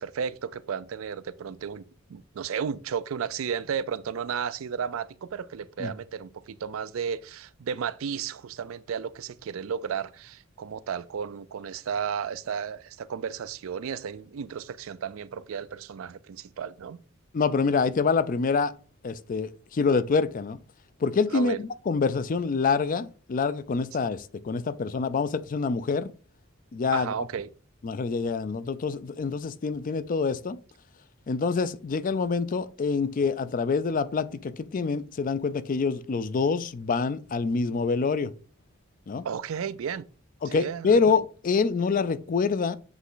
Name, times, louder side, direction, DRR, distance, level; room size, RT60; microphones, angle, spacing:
voice 1, 0.0-17.0 21.3-21.6 26.9-27.5 39.2-40.1 40.5-41.0, right 7 dB, 80° right, 0.4 m, -33 dB
voice 2, 17.3-18.7 19.0-20.6 21.0-26.1 26.7-27.1 27.8-30.6 31.3-38.3 39.1-39.3 40.4-42.8, left 4 dB, 40° left, 0.4 m, -26 dB
7.9 x 3.0 x 3.9 m
head